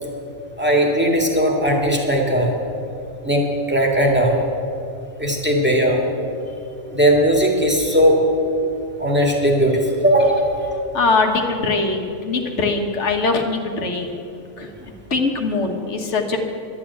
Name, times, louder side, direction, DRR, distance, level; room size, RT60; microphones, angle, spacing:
voice 1, 0.6-2.5 3.2-4.4 5.2-6.1 6.9-8.2 9.0-10.5, equal, 10° right, -1 dB, 2.0 m, -18 dB
voice 2, 10.9-14.2 14.6-14.7 15.1-16.4, left 3 dB, 85° left, 4 dB, 1.6 m, -21 dB
11.0 x 11.0 x 8.4 m, 2.7 s
omnidirectional pair, 1.2 m